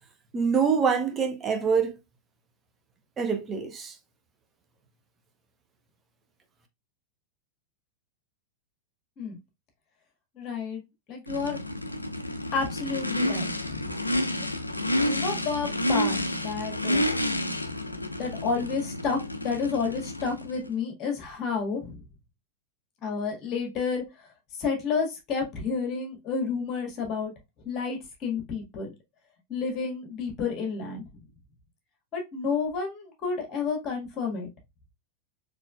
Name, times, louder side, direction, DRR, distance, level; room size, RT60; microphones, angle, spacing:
voice 1, 0.3-1.9 3.2-3.9, right 6 dB, 20° right, 0.9 m, -25 dB
voice 2, 10.4-11.6 12.5-13.9 14.4-14.5 14.9-17.0 18.2-22.0 23.0-24.3 24.5-27.3 27.6-28.9 29.5-31.0 32.1-34.5, left 5 dB, 35° left, 1.6 m, -30 dB
Race car auto racing / Idling / Accelerating revving vroom, 11.3-20.7, left 1 dB, 85° left, 0.4 m, -30 dB
4.1 x 3.3 x 2.3 m
figure-of-eight pair, 90°, 0 cm